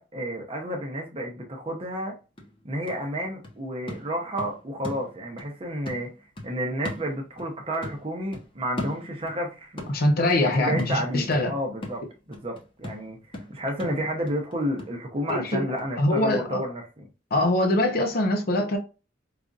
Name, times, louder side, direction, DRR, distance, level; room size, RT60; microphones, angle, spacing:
voice 1, 0.0-2.2 2.6-6.1 6.4-9.9 10.6-17.1, equal, 30° right, 0.7 m, -31 dB
sound 1, 1.9-2.0 2.4-5.5 5.9-7.6 7.8-9.4 9.8-15.4 15.8-15.9, left 1 dB, 30° left, 0.9 m, -40 dB
voice 2, 9.9-11.5 15.3-15.7 16.0-16.6 17.3-18.8, left 1 dB, 55° left, 0.6 m, -23 dB
4.9 x 2.5 x 2.4 m
head